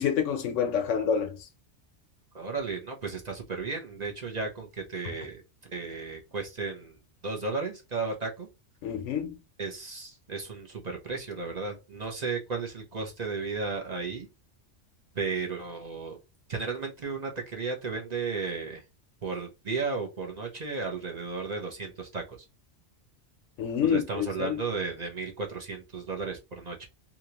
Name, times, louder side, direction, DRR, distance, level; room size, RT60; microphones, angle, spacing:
voice 1, 0.0-1.5 8.8-9.4 23.6-24.6, left 7 dB, 90° left, 1.0 m, -28 dB
voice 2, 2.3-7.0 7.2-8.5 9.6-14.3 15.1-16.2 16.5-18.8 19.2-22.4 23.8-26.9, right 4 dB, 40° right, 0.7 m, -34 dB
2.9 x 2.4 x 2.8 m
omnidirectional pair, 1.2 m